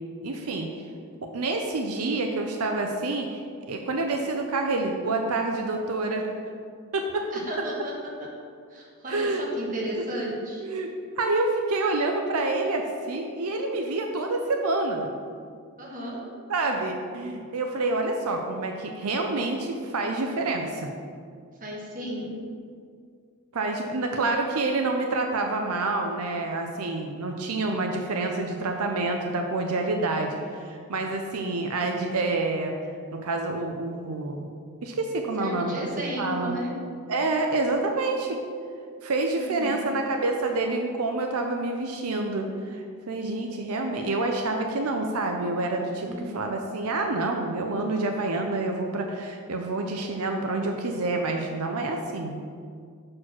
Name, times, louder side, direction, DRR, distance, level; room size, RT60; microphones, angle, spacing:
voice 1, 0.2-0.7 1.3-3.4 3.7-6.3 6.9-7.3 9.1-9.4 10.6-15.1 16.5-20.9 23.5-32.8 33.2-34.5 34.8-35.7 36.2-36.5 37.1-38.4 39.0-52.4, right 2 dB, 85° right, 3 dB, 0.6 m, -28 dB
voice 2, 7.3-8.3 8.7-10.6 15.8-16.2 21.6-22.3 35.4-36.7 39.4-39.9 46.0-46.5, equal, 35° right, -3 dB, 1.3 m, -34 dB
6.4 x 4.4 x 5.9 m, 2.2 s
head